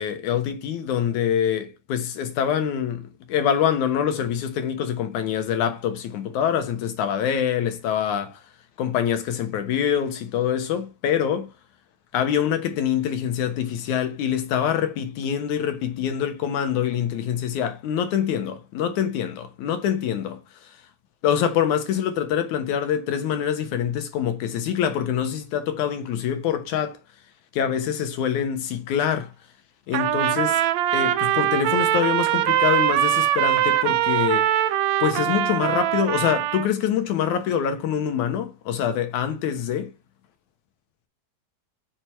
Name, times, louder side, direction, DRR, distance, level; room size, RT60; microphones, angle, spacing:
voice 1, 0.0-8.4 8.8-11.5 12.1-20.7 21.2-27.0 27.5-29.3 29.9-30.6 30.9-34.5 35.0-39.9, left 9 dB, 90° left, 2.6 m, -25 dB
Trumpet, 29.9-36.7, right 12 dB, 80° right, 1.8 m, -22 dB
6.7 x 4.5 x 6.7 m
omnidirectional pair, 3.3 m